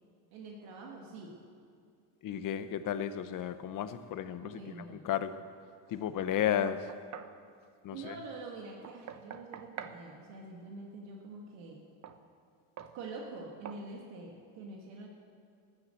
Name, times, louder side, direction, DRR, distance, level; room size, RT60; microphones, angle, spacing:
voice 1, 0.3-1.4 4.4-5.1 7.9-11.8 12.9-15.1, right 3 dB, 80° right, -1 dB, 2.0 m, -45 dB
voice 2, 2.2-4.6 4.9-5.4 5.9-6.9 7.8-8.2, left 10 dB, 45° left, 12 dB, 0.8 m, -33 dB
Knock, 6.2-7.4 8.8-10.0 12.0-12.2 12.8-13.0 13.7-13.9, right 8 dB, 40° right, 0.8 m, -46 dB
13.5 x 9.8 x 7.7 m, 2.3 s
cardioid pair, 110°, 45 cm